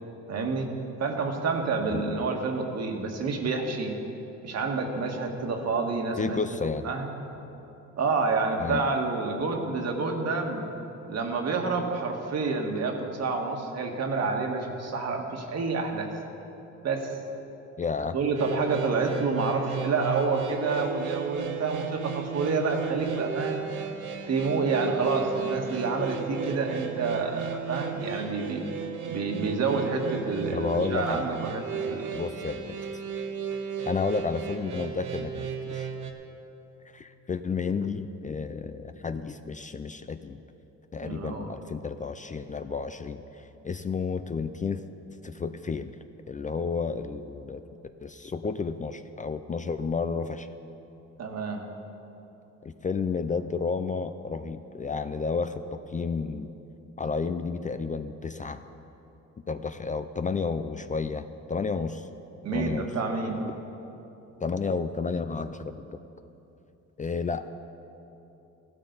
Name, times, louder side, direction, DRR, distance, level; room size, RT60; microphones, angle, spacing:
voice 1, 0.3-0.7 1.0-4.0 4.4-6.4 6.8-7.1 8.0-10.7 11.1-16.1 16.8-17.1 18.1-23.6 24.3-28.6 29.1-32.2 41.0-41.5 51.2-51.7 62.4-63.4, right 4 dB, 60° right, 2 dB, 1.7 m, -28 dB
voice 2, 6.2-6.9 8.6-8.8 17.8-18.2 30.5-31.2 32.1-32.8 33.9-35.9 36.9-40.4 40.9-44.8 45.2-46.0 46.3-47.6 48.0-50.5 52.6-56.5 57.0-58.6 59.5-62.1 62.5-62.9 64.4-66.0 67.0-67.5, left 5 dB, 25° left, 10 dB, 0.5 m, -31 dB
sound 1, 18.3-36.1, right 7 dB, 85° right, 1.2 m, -35 dB
15.5 x 12.5 x 4.0 m, 3.0 s
cardioid pair, 90°, 30 cm